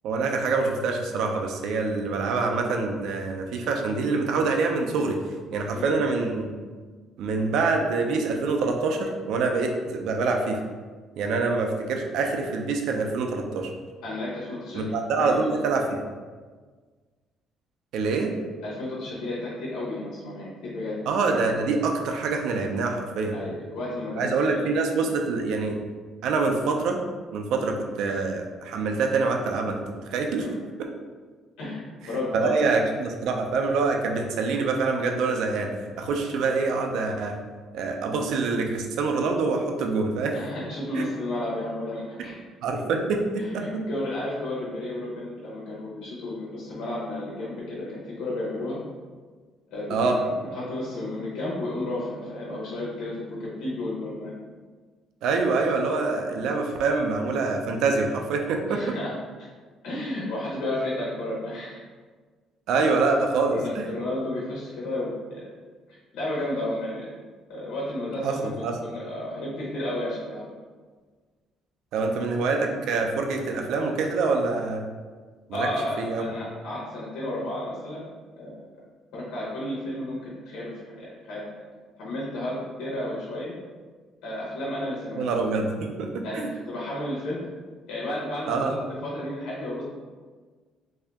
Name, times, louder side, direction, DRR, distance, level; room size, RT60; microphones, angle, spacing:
voice 1, 0.0-5.2 5.5-6.5 7.2-10.6 11.2-13.7 14.7-16.0 17.9-18.3 21.1-23.4 24.2-25.8 26.2-27.0 27.3-29.8 30.1-30.5 30.8-30.9 32.4-35.7 36.0-37.4 37.7-40.3 40.9-41.0 42.6-43.9 49.9-50.2 55.2-59.0 62.7-63.9 68.2-68.8 71.9-74.8 75.5-75.7 76.0-76.3 85.2-86.5 88.5-88.7, right 4 dB, 75° right, 3 dB, 0.4 m, -25 dB
voice 2, 14.0-15.4 18.6-21.0 23.3-24.6 30.4-30.5 31.6-31.8 32.1-32.8 40.3-42.4 43.4-48.8 49.7-50.2 50.5-54.3 58.7-59.1 59.8-61.8 63.5-65.5 65.9-67.1 67.5-70.4 75.5-78.0 78.4-78.6 79.1-80.7 81.0-81.4 82.0-83.6 84.2-85.2 86.2-87.4 87.9-88.8 89.0-89.8, left 1 dB, 75° left, -6 dB, 0.8 m, -32 dB
3.3 x 2.7 x 3.4 m, 1.5 s
cardioid pair, 125°, 0 cm